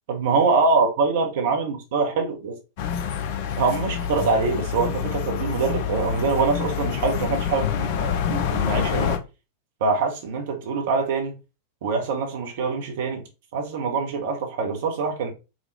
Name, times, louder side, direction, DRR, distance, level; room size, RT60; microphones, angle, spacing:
voice 1, 0.1-2.6 3.6-9.2 9.8-11.4 11.8-13.2 13.5-15.3, right 4 dB, 55° right, 1.0 m, -24 dB
sound 1, 2.8-9.2, left 8 dB, 50° left, 0.5 m, -27 dB
4.9 x 2.4 x 3.2 m
figure-of-eight pair, 90°, 0 cm